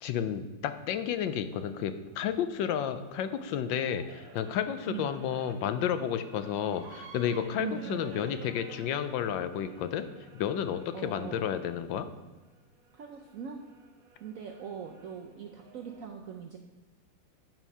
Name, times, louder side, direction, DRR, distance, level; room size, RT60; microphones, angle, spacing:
voice 1, 0.0-10.0 10.3-12.1, left 9 dB, 80° left, 10 dB, 1.3 m, -31 dB
glitched crying, 0.8-11.6 12.4-16.1, right 4 dB, 55° right, 1.3 m, -53 dB
voice 2, 7.6-8.1 10.9-11.5 12.9-13.6 14.2-16.6, right 7 dB, 70° right, 2 dB, 0.8 m, -41 dB
9.0 x 4.6 x 5.4 m, 1.2 s
omnidirectional pair, 2.1 m